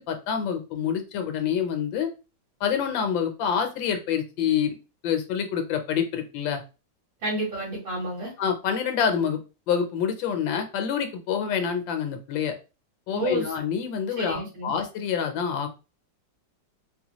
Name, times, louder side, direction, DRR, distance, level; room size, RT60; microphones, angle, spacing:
voice 1, 0.1-2.1 2.6-4.8 5.0-6.6 8.4-12.6 13.1-15.7, left 7 dB, 80° left, 6 dB, 1.4 m, -27 dB
voice 2, 7.2-8.3 13.1-13.5 14.2-14.8, right 1 dB, 85° right, -6 dB, 2.0 m, -30 dB
3.9 x 2.2 x 2.9 m, 0.30 s
omnidirectional pair, 2.1 m